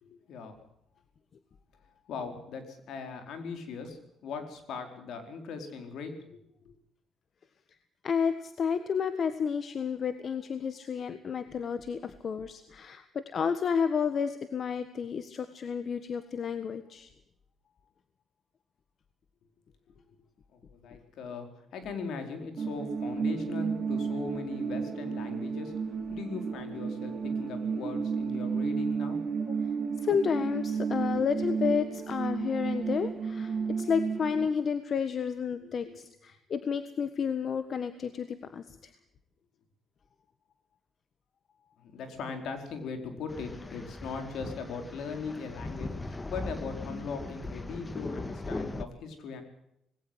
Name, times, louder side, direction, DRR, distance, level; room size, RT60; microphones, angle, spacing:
voice 1, 0.0-0.6 2.1-6.7 19.9-20.0 20.5-25.7 26.1-29.2 31.1-31.2 35.6-36.0 41.8-49.4, left 5 dB, 75° left, 6 dB, 4.5 m, -39 dB
voice 2, 8.0-17.1 29.5-29.6 30.0-38.9, left 6 dB, 55° left, 11 dB, 1.4 m, -31 dB
sound 1, 22.6-34.5, right 5 dB, 50° right, 4.2 m, -32 dB
sound 2, 43.3-48.8, left 2 dB, 20° left, 1.5 m, -39 dB
20.0 x 17.5 x 8.0 m, 0.77 s
cardioid pair, 90°, 0 cm